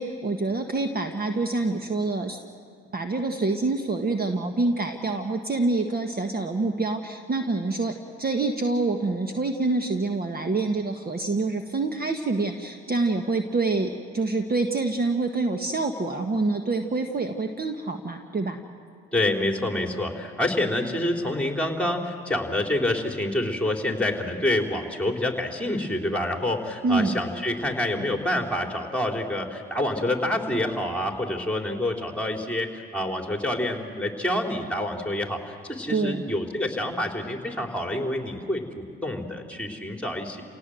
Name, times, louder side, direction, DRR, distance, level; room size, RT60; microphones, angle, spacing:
voice 1, 0.0-2.4 2.9-7.9 8.2-18.6 26.8-27.1 35.9-36.2, right 3 dB, 30° right, 5 dB, 1.5 m, -26 dB
voice 2, 19.1-40.4, left 1 dB, 5° left, 2 dB, 3.7 m, -27 dB
29.5 x 18.0 x 7.8 m, 2.2 s
supercardioid pair, 65°, 30 cm